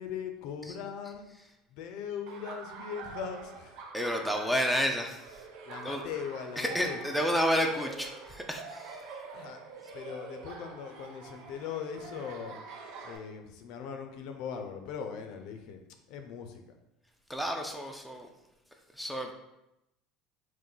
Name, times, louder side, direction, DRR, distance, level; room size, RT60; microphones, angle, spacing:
voice 1, 0.0-1.3 1.7-3.8 5.7-7.0 9.3-9.6 9.9-12.6 13.0-15.8 16.1-16.6, left 7 dB, 60° left, 6 dB, 0.5 m, -40 dB
Laughter, 2.3-13.2, right 4 dB, 65° right, 0.6 m, -46 dB
voice 2, 3.9-5.2 5.8-6.0 6.6-9.0 17.3-18.3 19.0-19.3, equal, ahead, 2 dB, 0.3 m, -30 dB
3.8 x 2.6 x 3.8 m, 0.89 s
cardioid pair, 155°, 0 cm